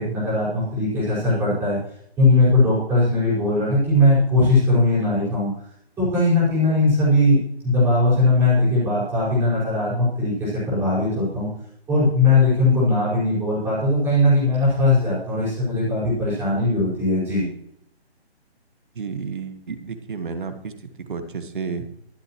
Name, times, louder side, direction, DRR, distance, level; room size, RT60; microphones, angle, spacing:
voice 1, 0.0-1.8 2.2-5.5 6.0-11.5 11.9-17.5, left 2 dB, 5° right, -9 dB, 5.3 m, -19 dB
voice 2, 18.9-20.7 21.0-21.9, right 5 dB, 50° right, 8 dB, 1.6 m, -31 dB
23.0 x 7.8 x 3.1 m, 0.71 s
hypercardioid pair, 165°, 32 cm